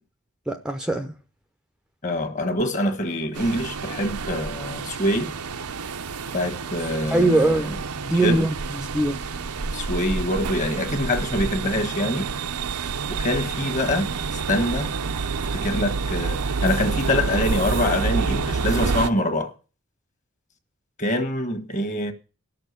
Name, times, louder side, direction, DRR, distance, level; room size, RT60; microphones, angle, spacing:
voice 1, 0.5-1.1 7.1-7.7 8.0-9.2, right 2 dB, 5° right, 0.6 m, -22 dB
voice 2, 2.0-5.3 6.3-7.8 8.1-8.5 9.7-12.3 13.2-14.1 14.5-14.9 15.5-19.5 21.0-22.1, left 1 dB, 35° left, 1.5 m, -25 dB
sound 1, 3.3-19.1, right 5 dB, 80° right, 0.8 m, -28 dB
12.0 x 6.7 x 8.1 m
head